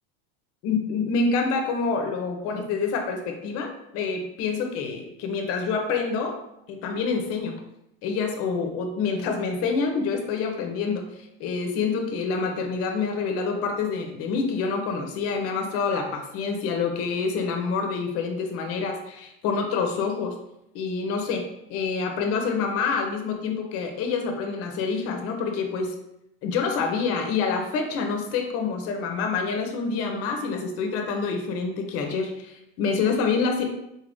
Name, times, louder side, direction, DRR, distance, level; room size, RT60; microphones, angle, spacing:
voice 1, 0.6-6.4 6.7-7.6 8.0-11.1 11.4-20.3 20.7-25.9 26.4-33.7, left 5 dB, 50° left, 4 dB, 0.8 m, -27 dB
4.1 x 2.6 x 3.5 m, 0.82 s
supercardioid pair, 115°, 30 cm